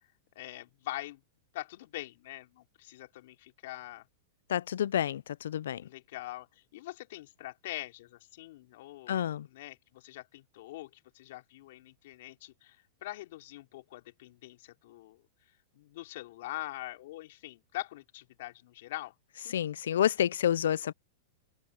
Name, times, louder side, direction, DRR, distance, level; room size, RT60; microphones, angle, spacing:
voice 1, 0.4-1.2 1.5-4.1 5.8-15.2 15.7-19.1, left 16 dB, 65° left, 3.9 m, -43 dB
voice 2, 4.5-5.9 9.1-9.5 19.5-20.9, left 10 dB, 85° left, 0.3 m, -29 dB
open air
supercardioid pair, 145°, 0 cm